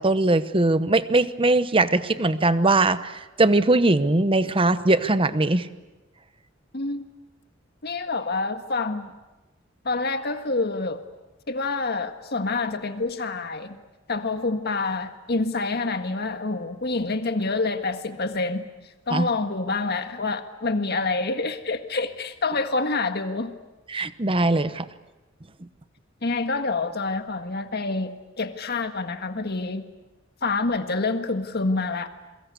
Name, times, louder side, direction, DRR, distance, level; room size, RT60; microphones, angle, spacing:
voice 1, 0.0-5.7 19.1-19.3 23.9-24.9, right 2 dB, 30° right, 13 dB, 1.0 m, -21 dB
voice 2, 6.7-7.1 7.8-9.1 9.9-11.0 11.5-13.8 14.1-18.7 19.1-23.5 26.2-28.1 28.4-29.8 30.4-32.1, left 3 dB, 55° left, 8 dB, 1.7 m, -27 dB
28.5 x 23.0 x 8.3 m, 1.1 s
head